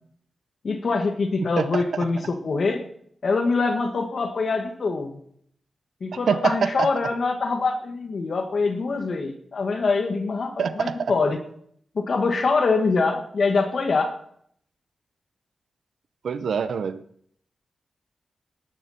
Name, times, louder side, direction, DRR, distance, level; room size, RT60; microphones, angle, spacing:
voice 1, 0.6-2.8 3.2-5.2 6.0-11.4 12.0-14.1, left 4 dB, 65° left, 5 dB, 1.9 m, -24 dB
voice 2, 1.6-2.0 6.3-6.9 10.6-11.1 16.2-17.0, right 6 dB, 85° right, 12 dB, 0.7 m, -25 dB
18.5 x 10.5 x 4.4 m, 0.65 s
cardioid pair, 75°, 0 cm